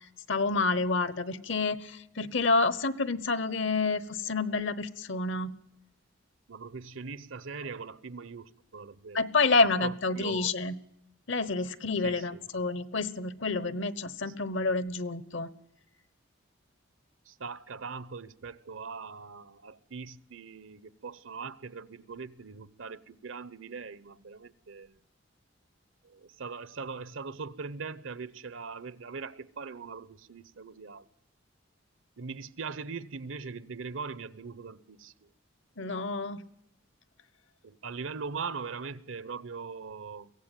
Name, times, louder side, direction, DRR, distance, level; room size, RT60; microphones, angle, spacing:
voice 1, 0.3-5.5 9.1-10.8 11.3-15.5 35.8-36.4, left 3 dB, 70° left, 1.1 m, -28 dB
voice 2, 6.5-9.2 9.8-10.5 12.0-12.4 14.3-14.4 17.3-25.0 26.0-31.1 32.2-35.1 37.6-40.3, right 5 dB, 80° right, 0.9 m, -41 dB
23.0 x 16.5 x 9.2 m
head